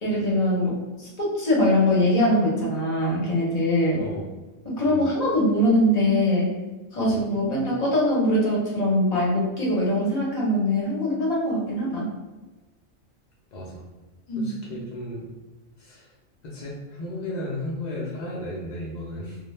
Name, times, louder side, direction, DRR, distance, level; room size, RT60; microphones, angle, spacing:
voice 1, 0.0-1.1 1.4-4.0 4.8-6.5 6.9-12.1 14.3-14.6, left 1 dB, 40° left, -5 dB, 0.6 m, -22 dB
voice 2, 4.0-4.3 4.8-5.1 13.5-13.8 14.4-15.3 15.8-16.1 16.4-19.4, left 1 dB, 75° left, -5 dB, 0.4 m, -34 dB
2.2 x 2.1 x 3.1 m, 1.2 s
omnidirectional pair, 1.4 m